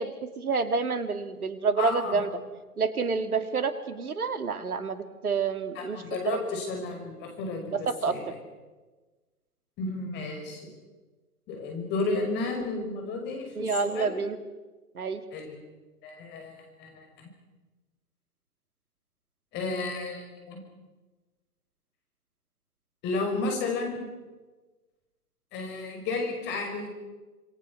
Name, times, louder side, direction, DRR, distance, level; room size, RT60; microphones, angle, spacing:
voice 1, 0.0-2.3 2.8-6.4 7.7-8.2 13.5-14.4 14.9-15.2, right 4 dB, 70° right, 10 dB, 2.5 m, -28 dB
voice 2, 1.8-2.1 5.7-8.3 9.8-10.7 11.5-14.1 15.3-15.6 16.0-17.3 19.5-20.6 23.0-24.1 25.5-26.9, left 3 dB, 25° left, 3 dB, 5.8 m, -32 dB
27.0 x 23.0 x 6.3 m, 1.2 s
figure-of-eight pair, 130°, 46 cm